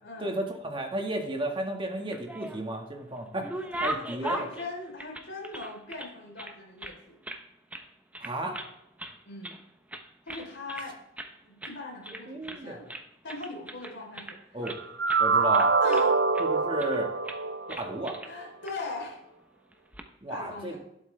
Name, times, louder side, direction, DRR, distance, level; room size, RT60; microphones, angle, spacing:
voice 1, 0.2-3.5 3.8-4.5 8.2-8.6 12.3-12.8 14.5-14.8 15.2-15.7 16.4-17.1 17.7-18.2 20.2-20.8, right 1 dB, 25° right, 2 dB, 1.9 m, -33 dB
sound 1, 2.0-2.8 3.2-6.1 6.4-7.4 7.7-7.9 8.1-8.7 9.0-9.6 9.9-10.9 11.2-11.3 11.6-11.8 12.0-12.6 12.9-14.8 15.1-15.3 15.5-16.5 16.8-17.0 17.3-17.4 17.7-18.3 18.7-18.8 19.7-20.1, right 1 dB, 5° right, 0.9 m, -38 dB
voice 2, 3.6-7.2 9.3-9.6 10.3-11.0 11.4-12.9 13.2-14.6 15.8-16.2 18.2-19.2 20.3-20.8, left 3 dB, 60° left, -1 dB, 4.2 m, -40 dB
sound 2, 14.6-18.2, right 4 dB, 65° right, 0.7 m, -25 dB
12.0 x 12.0 x 3.5 m, 0.82 s
head